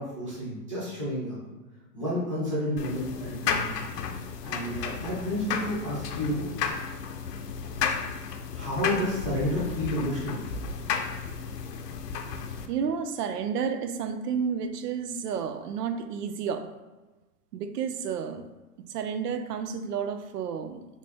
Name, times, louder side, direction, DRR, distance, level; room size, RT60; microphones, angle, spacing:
voice 1, 0.0-1.4 1.9-3.8 4.4-6.5 8.5-10.5 11.1-11.2, left 1 dB, 20° right, -10 dB, 0.4 m, -30 dB
sound 1, 2.8-12.7, left 6 dB, 85° left, 0.6 m, -33 dB
voice 2, 12.7-16.7 17.5-18.4 18.8-21.0, right 6 dB, 75° right, 9 dB, 0.5 m, -31 dB
3.3 x 2.6 x 3.3 m, 1.2 s
hypercardioid pair, 180°, 47 cm